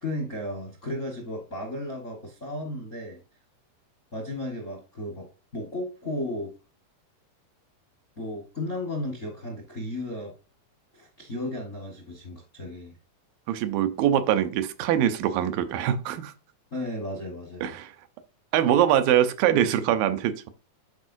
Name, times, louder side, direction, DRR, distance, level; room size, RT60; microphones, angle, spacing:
voice 1, 0.0-3.2 4.1-5.3 5.5-6.5 8.2-10.3 10.9-12.9 16.7-17.7, left 1 dB, 50° left, 0.9 m, -34 dB
voice 2, 13.5-16.3 17.6-17.9 18.5-20.5, right 10 dB, 90° right, 2.5 m, -23 dB
10.5 x 4.3 x 2.7 m
omnidirectional pair, 3.9 m